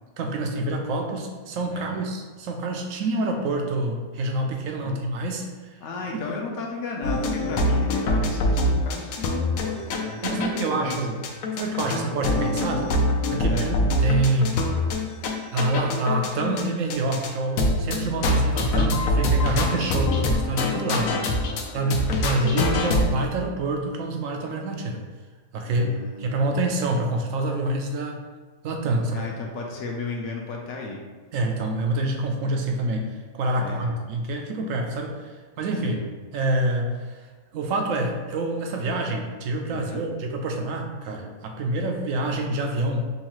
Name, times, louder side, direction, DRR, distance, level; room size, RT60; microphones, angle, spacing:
voice 1, 0.2-5.4 6.1-6.2 10.2-11.2 11.5-12.9 13.3-13.8 14.0-14.6 15.5-21.1 21.7-25.0 25.5-25.9 26.2-28.2 28.6-29.3 31.3-36.0 36.3-37.2 37.5-43.1, right 2 dB, 75° right, 2 dB, 0.9 m, -27 dB
voice 2, 1.7-2.1 4.8-5.0 5.8-11.1 11.8-12.3 13.5-13.8 20.9-22.5 25.6-26.6 29.1-31.0 33.6-34.0 35.8-36.0 39.7-40.1, left 3 dB, 65° left, 0 dB, 0.9 m, -35 dB
sound 1, 7.0-10.6 10.9-11.0 11.2-16.6 16.9-17.3 17.6-21.7 21.9-23.2, left 1 dB, 90° left, 1.0 m, -24 dB
5.3 x 2.4 x 3.0 m, 1.3 s
omnidirectional pair, 1.4 m